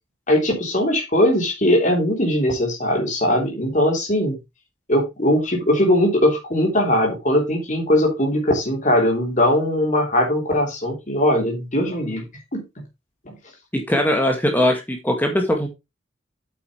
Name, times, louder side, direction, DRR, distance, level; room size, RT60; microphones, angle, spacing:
voice 1, 0.3-4.4 4.9-12.2 12.5-12.6, left 1 dB, 35° left, 1 dB, 3.3 m, -20 dB
voice 2, 13.7-15.7, left 1 dB, 10° left, 3 dB, 1.8 m, -20 dB
8.8 x 8.4 x 3.1 m, 0.23 s
head